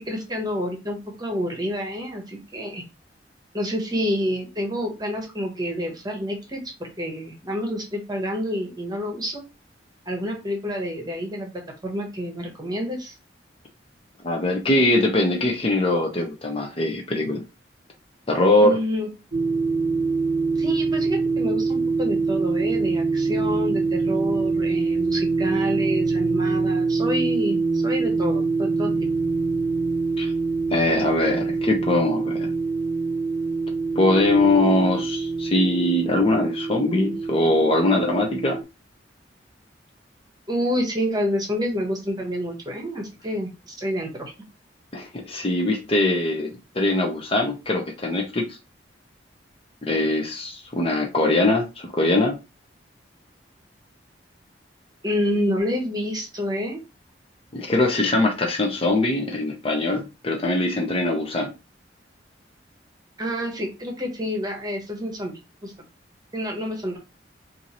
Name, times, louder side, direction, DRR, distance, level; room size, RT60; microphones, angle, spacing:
voice 1, 0.0-2.8 3.5-9.4 10.1-11.5 11.8-13.2 18.6-19.1 20.6-29.1 40.5-44.3 55.0-56.8 63.2-65.7 66.3-67.0, equal, 20° right, 1.0 m, -28 dB
voice 2, 14.2-17.4 18.3-18.8 30.2-30.3 30.7-32.5 34.0-38.6 44.9-48.4 49.8-52.4 57.5-61.5, left 2 dB, 30° left, 0.6 m, -22 dB
sound 1, 19.3-38.6, right 4 dB, 45° right, 0.7 m, -24 dB
4.4 x 2.6 x 2.9 m
head